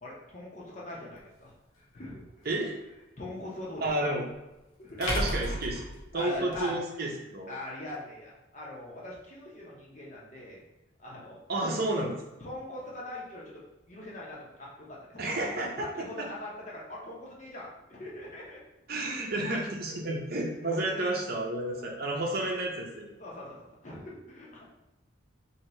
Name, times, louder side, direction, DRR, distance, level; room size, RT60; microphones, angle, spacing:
voice 1, 0.0-2.5 3.2-4.1 4.8-5.0 6.1-7.1 7.5-10.6 11.0-11.4 11.6-11.7 12.4-18.6 19.5-19.6 19.9-20.0 20.4-20.9 21.7-22.3 23.2-24.6, left 1 dB, 35° left, -4 dB, 0.9 m, -42 dB
sound 1, 1.2-1.3 3.8-3.9 5.0-6.6, equal, 80° left, 1.1 m, -32 dB
voice 2, 3.8-4.3 5.0-5.9 6.1-7.5 11.5-12.1 15.2-15.9 16.2-16.3 18.9-23.1, right 1 dB, 50° right, -1 dB, 0.7 m, -31 dB
2.9 x 2.8 x 4.3 m, 1.0 s
head